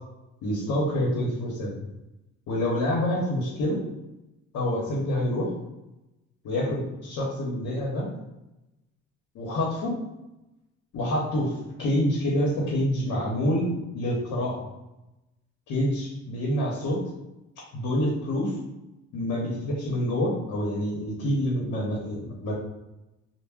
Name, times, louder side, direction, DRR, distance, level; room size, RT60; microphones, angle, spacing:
voice 1, 0.4-1.7 2.5-3.8 4.5-5.5 6.4-8.1 9.3-10.0 10.9-11.5 11.8-14.6 15.7-17.0 17.7-18.5 19.1-22.5, left 1 dB, 75° left, -4 dB, 0.8 m, -27 dB
2.2 x 2.0 x 3.5 m, 0.97 s
cardioid pair, 90°, 30 cm